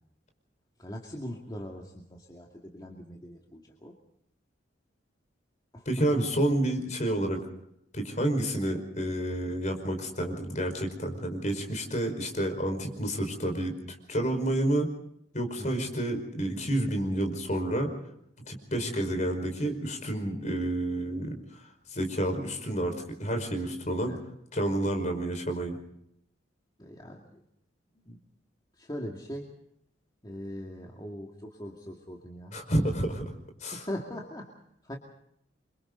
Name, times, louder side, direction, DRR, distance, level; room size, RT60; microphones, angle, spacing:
voice 1, 0.8-3.9 5.7-5.9 6.1-6.2 15.6-15.9 18.7-18.9 24.0-24.2 26.8-27.4 28.0-28.2 28.8-29.5 30.2-32.6 33.7-35.0, equal, 20° left, 0 dB, 2.4 m, -41 dB
voice 2, 5.8-7.4 7.9-13.7 14.1-14.9 15.3-17.9 18.5-21.3 21.9-24.1 24.5-25.8 32.5-33.2 33.6-33.8, right 1 dB, 40° left, 5 dB, 5.1 m, -29 dB
29.0 x 25.0 x 4.0 m, 0.74 s
head